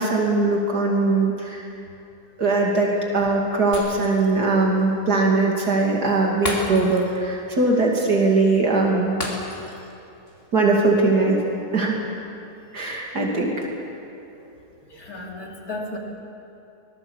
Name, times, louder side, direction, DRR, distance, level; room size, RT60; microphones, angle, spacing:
voice 1, 0.0-1.6 2.4-9.1 10.5-11.4 11.7-12.0 12.7-13.5, right 3 dB, 75° right, -1 dB, 3.1 m, -20 dB
Shatter, 3.7-4.4 4.8-4.9 6.4-7.2 7.5-7.7 9.2-9.9 10.3-10.4, left 1 dB, 35° left, 3.4 m, -32 dB
voice 2, 14.9-16.0, left 2 dB, 65° left, -1 dB, 3.4 m, -34 dB
24.0 x 20.0 x 7.2 m, 2.7 s
omnidirectional pair, 1.7 m